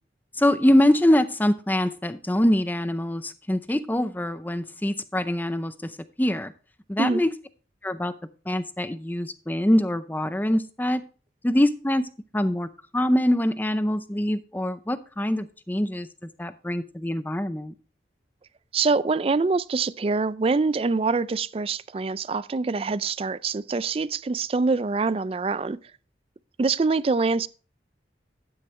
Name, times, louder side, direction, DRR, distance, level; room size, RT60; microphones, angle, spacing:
voice 1, 0.4-5.9 6.2-6.5 6.9-7.3 7.8-8.1 8.5-11.0 11.4-12.1 12.3-16.1 16.4-17.7, left 1 dB, 10° left, 0.6 m, -24 dB
voice 2, 18.7-25.8 26.6-27.5, right 4 dB, 35° right, 0.4 m, -25 dB
10.5 x 9.8 x 3.2 m
head